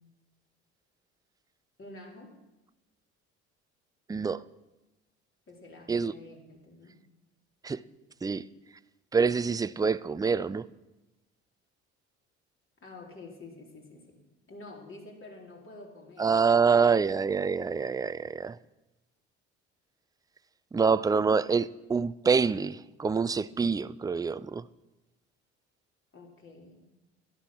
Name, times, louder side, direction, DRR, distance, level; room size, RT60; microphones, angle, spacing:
voice 1, 1.8-2.3 5.5-6.9 12.8-14.2 14.5-16.4 26.1-26.8, left 2 dB, 40° left, 4.1 m, -48 dB
voice 2, 4.1-4.4 5.9-6.1 7.6-7.8 8.2-8.4 9.1-10.7 16.2-18.6 20.7-24.6, right 5 dB, 10° right, 0.4 m, -26 dB
12.0 x 11.5 x 6.2 m
hypercardioid pair, 60°, 33 cm